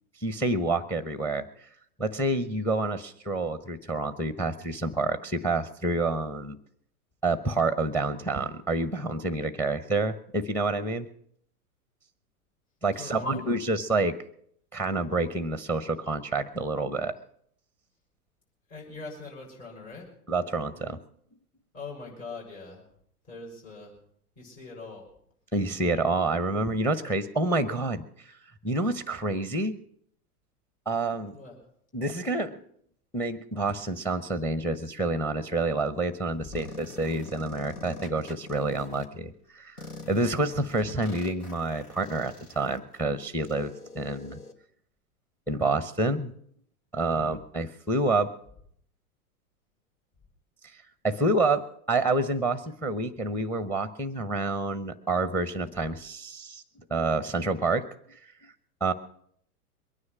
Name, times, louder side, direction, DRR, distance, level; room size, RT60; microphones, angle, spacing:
voice 1, 0.2-1.5 2.0-6.6 7.2-11.1 12.8-14.2 14.7-17.1 20.3-21.0 25.5-28.0 28.6-29.8 30.9-31.3 31.9-32.6 33.1-44.4 45.5-46.3 46.9-48.3 51.0-56.6 56.9-57.9 58.8-58.9, right 2 dB, 5° left, 14 dB, 0.8 m, -28 dB
voice 2, 13.0-13.5 18.7-20.1 21.7-22.8 23.3-23.9 24.4-25.0 31.3-31.6 47.1-47.3, left 3 dB, 40° left, -2 dB, 6.6 m, -42 dB
sound 1, 36.5-39.0 39.8-44.5, left 3 dB, 85° left, 1.9 m, -45 dB
22.0 x 9.7 x 6.1 m, 0.66 s
figure-of-eight pair, 100°, 45 cm